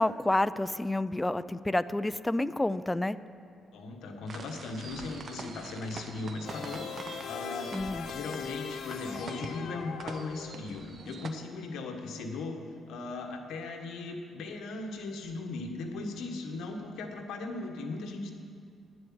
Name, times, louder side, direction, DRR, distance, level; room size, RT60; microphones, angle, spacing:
voice 1, 0.0-3.2 7.7-8.1, left 1 dB, 10° left, 15 dB, 0.3 m, -29 dB
voice 2, 3.7-12.6 12.9-18.3, left 3 dB, 80° left, 3 dB, 1.4 m, -38 dB
sound 1, 4.3-11.3, right 4 dB, 45° right, 0.8 m, -45 dB
sound 2, 6.4-10.8, left 7 dB, 65° left, 0.6 m, -41 dB
10.5 x 7.8 x 8.8 m, 2.3 s
cardioid pair, 110°, 0 cm